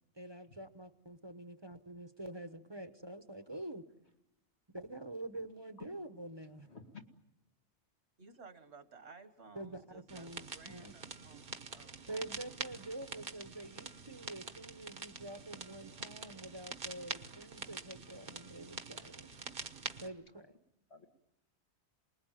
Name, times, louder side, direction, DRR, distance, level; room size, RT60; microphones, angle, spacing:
voice 1, 0.1-3.8 4.7-6.7 9.5-10.9 12.1-19.3 20.0-20.5, right 1 dB, 25° right, 1.0 m, -46 dB
voice 2, 6.4-7.0 19.4-19.7 20.9-21.1, left 5 dB, 70° left, 2.3 m, -53 dB
voice 3, 8.2-12.1, right 4 dB, 70° right, 1.9 m, -56 dB
sound 1, 10.1-20.1, right 4 dB, 50° right, 1.3 m, -46 dB
28.0 x 20.5 x 9.1 m
omnidirectional pair, 1.2 m